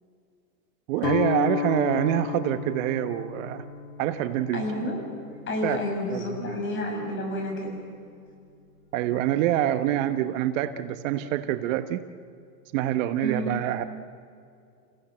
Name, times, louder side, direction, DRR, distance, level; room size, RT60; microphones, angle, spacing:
voice 1, 0.9-3.6 4.0-4.6 5.6-5.8 6.1-6.6 8.9-12.0 12.7-13.9, right 12 dB, 50° right, 10 dB, 1.2 m, -26 dB
Guitar, 1.0-7.0, left 11 dB, 80° left, 2.5 m, -34 dB
voice 2, 4.5-5.0 5.5-7.8 13.2-13.5, left 1 dB, 25° left, 2 dB, 7.1 m, -30 dB
30.0 x 16.5 x 7.9 m, 2.5 s
hypercardioid pair, 125°, 49 cm